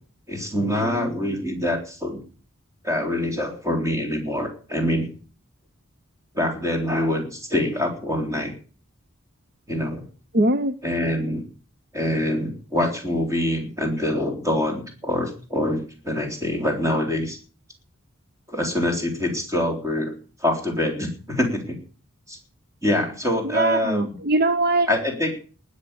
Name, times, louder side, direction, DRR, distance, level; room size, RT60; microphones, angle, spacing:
voice 1, 0.3-2.2 2.8-5.1 6.3-8.5 9.7-10.0 10.8-11.4 11.9-17.4 18.5-20.1 20.4-21.8 22.3-22.4 22.8-24.1 24.9-25.4, left 1 dB, 15° right, 3 dB, 3.6 m, -25 dB
voice 2, 10.3-10.7 23.4-24.9, right 2 dB, 45° right, 11 dB, 0.8 m, -21 dB
19.5 x 6.5 x 8.1 m, 0.40 s
head